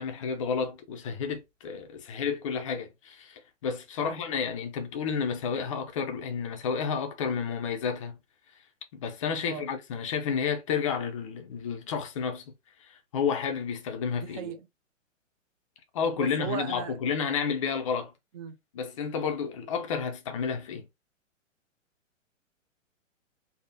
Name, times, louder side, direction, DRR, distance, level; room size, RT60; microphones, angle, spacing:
voice 1, 0.0-8.2 8.9-12.5 12.8-14.5 15.9-18.1 18.7-20.8, left 6 dB, 25° left, 0.4 m, -31 dB
voice 2, 14.2-14.6 16.2-17.0 18.3-18.6, right 8 dB, 30° right, 0.5 m, -37 dB
3.4 x 2.1 x 2.5 m
hypercardioid pair, 130°, 39 cm